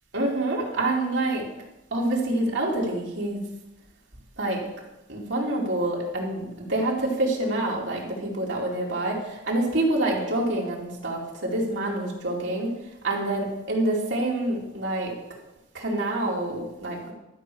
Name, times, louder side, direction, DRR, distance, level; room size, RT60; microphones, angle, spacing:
voice 1, 0.1-1.5 1.9-3.5 4.4-4.6 5.1-15.1 15.7-17.1, right 1 dB, 70° right, -3 dB, 2.7 m, -27 dB
12.5 x 4.9 x 6.9 m, 0.95 s
head